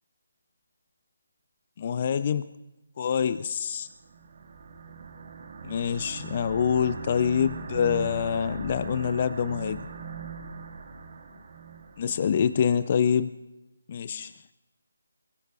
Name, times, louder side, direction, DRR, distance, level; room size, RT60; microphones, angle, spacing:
voice 1, 1.8-2.4 3.0-3.9 5.6-9.9 12.0-13.3 13.9-14.3, left 7 dB, 40° left, 14 dB, 0.5 m, -26 dB
sound 1, 3.9-12.5, right 5 dB, 50° right, 2.0 m, -40 dB
25.0 x 22.5 x 2.4 m, 1.0 s
figure-of-eight pair, 150°, 0 cm